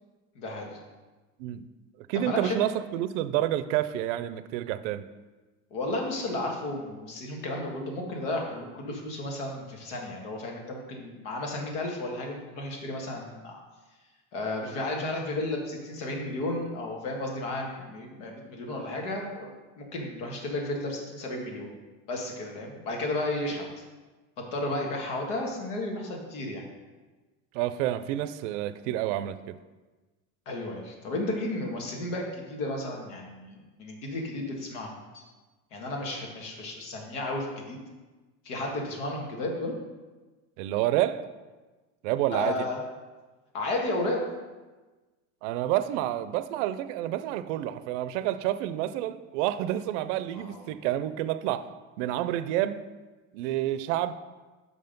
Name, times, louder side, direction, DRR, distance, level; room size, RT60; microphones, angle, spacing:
voice 1, 0.4-0.8 2.1-2.6 5.7-13.6 14.3-19.5 19.8-21.7 22.1-23.6 24.5-26.7 30.5-35.2 35.7-37.8 38.5-39.7 42.3-42.8 43.5-44.2 50.3-50.6, left 2 dB, 85° left, 1.9 m, -33 dB
voice 2, 2.1-5.1 27.5-29.5 40.6-41.3 42.0-42.7 45.4-51.7 52.0-52.8 53.3-54.1, right 13 dB, 85° right, 0.5 m, -29 dB
6.2 x 5.7 x 5.2 m
cardioid pair, 160°, 36 cm